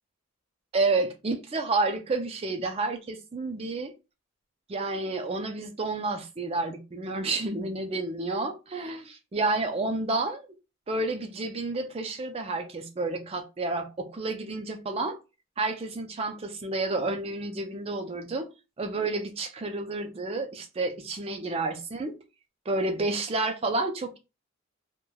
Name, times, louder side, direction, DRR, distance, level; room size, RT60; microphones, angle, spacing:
voice 1, 0.7-3.9 4.7-10.5 10.9-15.2 15.6-18.5 18.8-22.1 22.7-24.2, right 3 dB, 30° right, 0.4 m, -30 dB
3.1 x 2.2 x 2.2 m
head